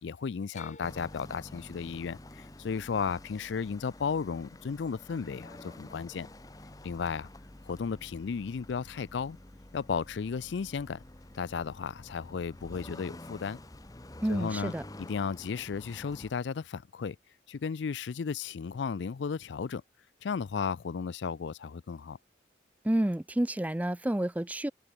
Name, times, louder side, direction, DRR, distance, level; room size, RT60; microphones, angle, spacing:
voice 1, 0.0-6.3 6.8-7.3 7.6-9.4 9.7-11.0 11.3-13.6 14.3-14.7 15.1-17.2 17.5-19.8 20.2-22.2, left 5 dB, 75° left, 0.4 m, -34 dB
sound 1, 0.5-4.7 5.0-5.7 7.0-7.1, left 4 dB, 40° left, 5.6 m, -55 dB
sound 2, 0.8-16.3, left 1 dB, 20° left, 0.9 m, -49 dB
voice 2, 14.2-14.8 22.8-24.7, right 1 dB, 10° right, 0.3 m, -29 dB
open air
head